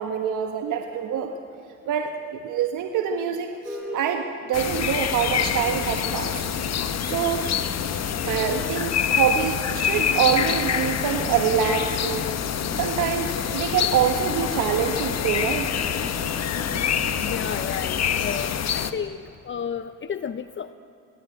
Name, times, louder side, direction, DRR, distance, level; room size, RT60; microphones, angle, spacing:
voice 1, 0.0-1.3 1.9-6.4 7.0-7.5 8.2-12.3 12.8-15.7, right 8 dB, 85° right, 5 dB, 1.4 m, -25 dB
sound 1, 3.6-13.5, equal, 5° right, 6.5 m, -46 dB
sound 2, 4.5-18.9, left 8 dB, 60° left, 1.4 m, -26 dB
sound 3, 5.3-17.6, left 3 dB, 80° left, 3.8 m, -38 dB
voice 2, 17.2-19.2 19.4-20.7, left 7 dB, 40° left, 11 dB, 0.7 m, -32 dB
24.0 x 22.5 x 9.2 m, 2.5 s
cardioid pair, 90°, 30 cm